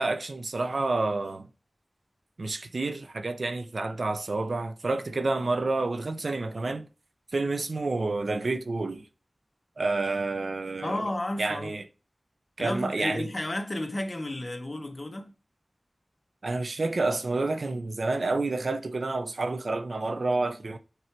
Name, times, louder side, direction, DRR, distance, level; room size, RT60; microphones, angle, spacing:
voice 1, 0.0-1.5 2.4-6.9 7.3-9.1 9.8-11.1 11.4-11.8 12.6-13.3 16.4-20.8, right 3 dB, 75° right, 0.7 m, -29 dB
voice 2, 10.8-11.7 12.6-15.3, left 1 dB, 40° left, 1.4 m, -32 dB
6.8 x 4.7 x 4.5 m
wide cardioid pair, 65°, 0 cm